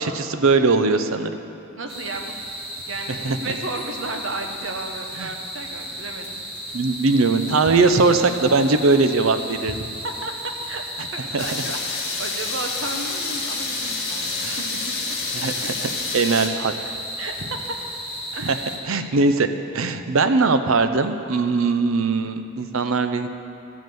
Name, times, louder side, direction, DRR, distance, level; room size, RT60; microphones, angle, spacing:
voice 1, 0.0-1.4 3.1-3.4 5.2-5.3 6.7-9.8 11.3-11.4 14.4-14.6 15.3-16.7 18.4-18.6 18.9-19.5 19.7-23.3, right 3 dB, 90° right, 9 dB, 0.6 m, -20 dB
voice 2, 1.8-2.3 2.9-6.5 7.6-7.8 9.6-9.7 10.0-14.6 15.1-15.2 15.6-15.8 17.2-17.8 18.3-18.7, right 2 dB, 65° right, 4 dB, 1.0 m, -33 dB
sound 1, 1.9-18.8, equal, 25° right, 1.7 m, -34 dB
sound 2, 11.4-16.5, left 4 dB, 50° left, 1.6 m, -29 dB
13.0 x 5.4 x 7.6 m, 2.7 s
head